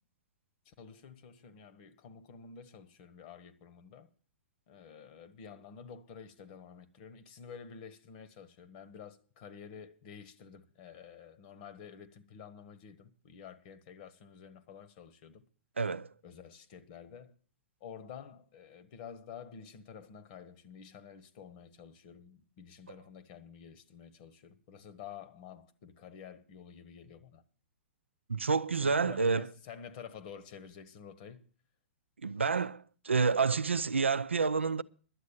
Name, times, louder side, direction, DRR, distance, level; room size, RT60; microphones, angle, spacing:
voice 1, 0.6-4.1 4.7-15.4 16.2-17.3 17.8-27.4 28.8-31.4, left 7 dB, 45° left, 1.3 m, -50 dB
voice 2, 15.8-16.1 28.3-29.5 32.2-34.8, right 5 dB, 80° right, 0.5 m, -29 dB
11.5 x 8.2 x 7.2 m
figure-of-eight pair, 110°, 6 cm